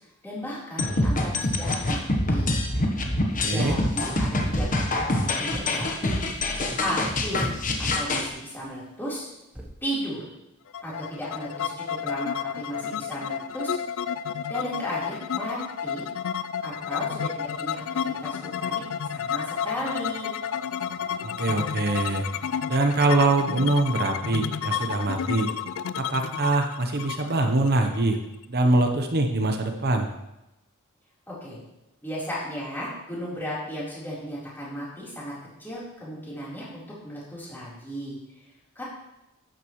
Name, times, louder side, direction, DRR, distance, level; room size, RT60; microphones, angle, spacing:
voice 1, 0.2-2.5 3.5-6.2 6.8-7.5 7.8-9.3 9.8-10.2 10.8-13.8 14.5-16.1 16.6-20.3 31.3-31.6 32.0-35.3 35.6-38.2 38.8-38.9, equal, 10° left, -8 dB, 4.0 m, -35 dB
sound 1, 0.8-8.3, left 2 dB, 40° left, 1.2 m, -25 dB
sound 2, 3.3-8.6 9.5-9.9, equal, 5° right, 1.2 m, -39 dB
voice 2, 3.4-3.8 21.2-22.3 22.7-25.5 26.0-28.2 28.5-30.1, right 2 dB, 50° right, 4 dB, 1.0 m, -23 dB
sound 3, 10.7-28.4, left 8 dB, 70° left, 0.4 m, -31 dB
12.0 x 9.1 x 3.2 m, 0.93 s
head